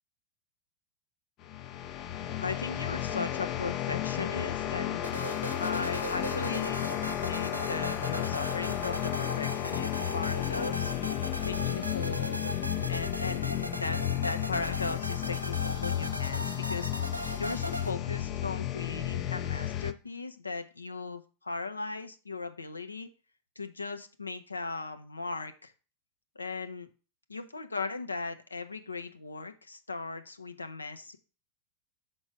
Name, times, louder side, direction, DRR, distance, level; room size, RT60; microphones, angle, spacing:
sound 1, 1.4-19.9, left 12 dB, 40° left, 0.5 m, -33 dB
voice 1, 2.4-5.0 5.6-6.8 7.2-10.9 11.4-12.5 12.9-16.9 17.4-23.1 23.6-25.7 26.4-26.9 27.3-31.2, left 3 dB, 80° left, 8 dB, 0.7 m, -37 dB
sound 2, 5.0-17.9, equal, 90° right, 0.3 m, -39 dB
6.0 x 3.9 x 5.2 m, 0.34 s
figure-of-eight pair, 90°, 0 cm